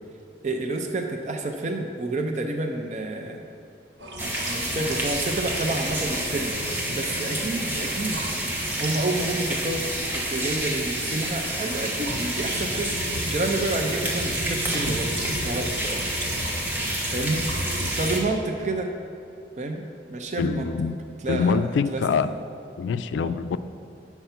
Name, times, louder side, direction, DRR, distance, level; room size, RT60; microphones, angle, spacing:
voice 1, 0.4-3.5 4.2-6.6 6.9-13.0 13.2-16.0 17.1-17.4 17.9-18.9 19.6-19.8 20.1-20.7 21.2-21.6 21.9-22.2 23.1-23.3, right 2 dB, 40° right, 4 dB, 0.5 m, -29 dB
sound 1, 4.0-18.2, right 1 dB, 80° right, 1.0 m, -35 dB
sound 2, 4.2-18.2, right 1 dB, 10° right, 0.8 m, -29 dB
voice 2, 20.4-21.0 21.3-22.3 22.8-23.6, left 5 dB, 85° left, 13 dB, 0.3 m, -24 dB
7.9 x 4.5 x 5.8 m, 2.6 s
head